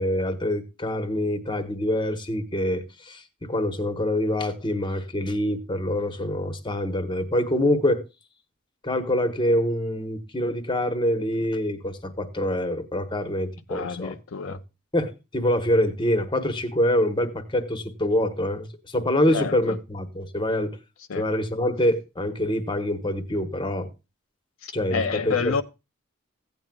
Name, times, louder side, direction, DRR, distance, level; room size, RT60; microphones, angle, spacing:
voice 1, 0.0-3.2 3.5-8.0 8.8-14.1 14.5-14.6 14.9-20.7 21.2-23.9 24.7-25.6, left 1 dB, 20° left, 1.1 m, -25 dB
voice 2, 13.7-14.6 19.3-19.8 21.1-21.2 24.6-25.6, left 5 dB, 70° left, 0.5 m, -29 dB
16.0 x 9.2 x 2.3 m
head